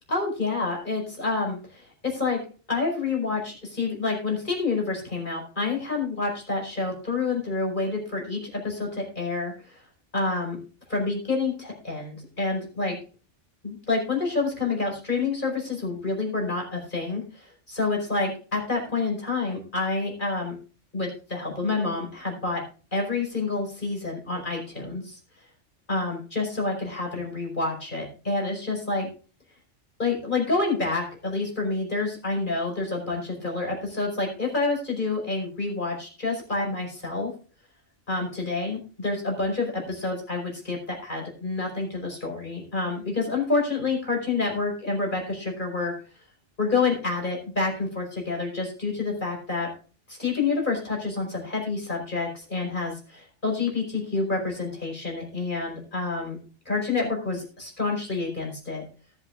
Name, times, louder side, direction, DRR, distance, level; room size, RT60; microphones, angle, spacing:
voice 1, 0.1-2.4 2.7-9.8 10.1-10.6 10.9-13.0 13.6-20.6 20.9-22.6 22.9-25.2 25.9-29.1 30.0-37.3 38.1-45.9 46.6-49.7 50.1-56.4 56.6-58.9, left 3 dB, 40° left, 0 dB, 5.1 m, -28 dB
19.0 x 8.3 x 2.5 m, 0.38 s
omnidirectional pair, 1.3 m